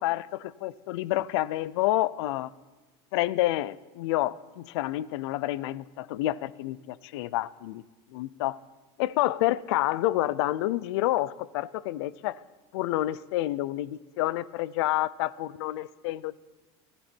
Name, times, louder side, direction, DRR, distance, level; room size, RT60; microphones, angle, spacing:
voice 1, 0.0-2.5 3.1-7.8 8.1-8.6 9.0-12.4 12.7-16.4, left 16 dB, 80° left, 0.6 m, -29 dB
16.5 x 15.5 x 4.5 m
supercardioid pair, 145°, 14 cm